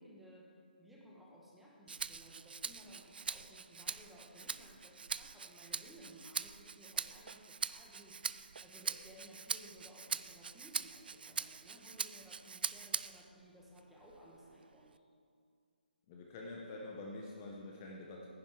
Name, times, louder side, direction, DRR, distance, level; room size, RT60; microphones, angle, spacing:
voice 1, 0.0-8.2 8.6-15.0, equal, ahead, -4 dB, 1.1 m, -58 dB
Rattle (instrument), 1.9-13.3 13.8-15.0, right 5 dB, 70° right, 0.4 m, -42 dB
voice 2, 16.1-18.3, left 2 dB, 20° left, -1 dB, 0.9 m, -46 dB
10.5 x 10.0 x 4.7 m, 2.2 s
hypercardioid pair, 170°, 5 cm